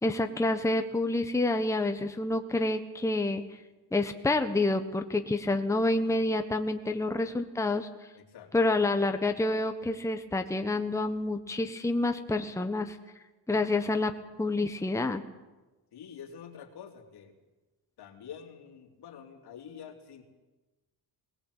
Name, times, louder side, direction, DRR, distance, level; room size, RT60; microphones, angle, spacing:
voice 1, 0.0-3.4 3.9-7.9 8.5-13.0 13.5-14.1 14.4-15.2, left 2 dB, 5° left, 6 dB, 1.2 m, -28 dB
voice 2, 8.1-8.5 15.9-17.3 18.0-20.2, left 8 dB, 70° left, 2 dB, 3.5 m, -47 dB
20.5 x 19.0 x 8.3 m, 1.1 s
cardioid pair, 125°, 40 cm